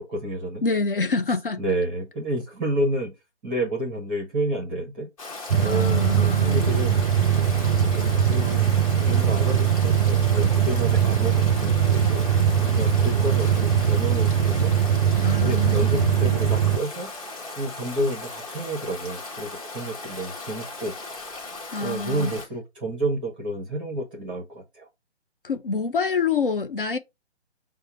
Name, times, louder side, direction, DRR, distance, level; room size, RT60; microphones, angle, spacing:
voice 1, 0.0-0.6 1.6-3.1 3.4-5.1 5.6-7.0 7.9-8.8 9.1-12.3 12.5-14.7 15.3-20.9 21.8-24.9, right 1 dB, 10° right, 0.6 m, -30 dB
voice 2, 0.6-1.6 5.6-6.6 15.2-16.4 21.7-22.3 25.4-27.0, left 4 dB, 50° left, 0.5 m, -27 dB
Stream, 5.2-22.5, left 3 dB, 30° left, 1.1 m, -37 dB
sound 1, 5.5-16.8, right 8 dB, 55° right, 0.4 m, -21 dB
5.7 x 2.1 x 4.2 m
figure-of-eight pair, 145°, 35 cm